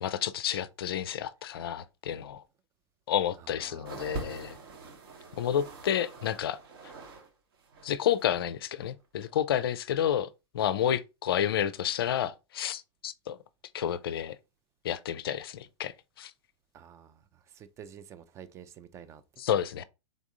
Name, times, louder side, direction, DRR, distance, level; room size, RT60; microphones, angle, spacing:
voice 1, 0.0-2.4 3.1-4.6 5.4-6.6 7.8-10.3 10.5-13.4 13.7-14.4 14.8-16.3 19.4-19.8, left 10 dB, 55° left, 0.4 m, -30 dB
voice 2, 3.4-4.8 16.7-19.6, right 8 dB, 20° right, 0.4 m, -51 dB
sound 1, 3.9-7.3 7.5-8.4 9.2-9.3, right 2 dB, 50° right, 1.1 m, -43 dB
3.8 x 3.5 x 3.6 m
figure-of-eight pair, 100°, 15 cm